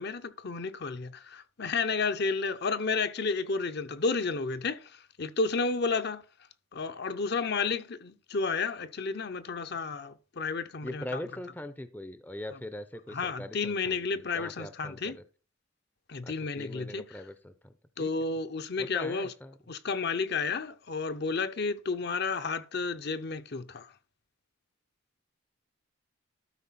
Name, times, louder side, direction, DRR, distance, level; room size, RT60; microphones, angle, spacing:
voice 1, 0.0-6.2 6.7-11.0 13.1-15.2 16.1-17.0 18.0-19.3 19.7-23.9, left 4 dB, 50° left, 0.7 m, -31 dB
voice 2, 10.8-15.2 16.2-18.1 18.8-19.6, left 1 dB, 10° left, 0.5 m, -42 dB
12.5 x 5.0 x 4.1 m
head